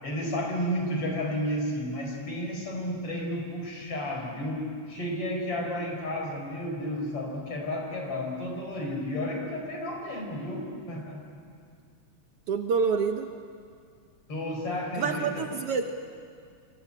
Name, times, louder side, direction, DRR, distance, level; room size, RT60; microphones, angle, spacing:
voice 1, 0.0-4.6 4.9-11.2 14.3-15.4, left 1 dB, 50° left, 1 dB, 5.8 m, -32 dB
voice 2, 12.5-13.3 15.0-15.8, right 5 dB, 60° right, 5 dB, 1.8 m, -27 dB
26.5 x 23.5 x 8.8 m, 2.2 s
omnidirectional pair, 3.3 m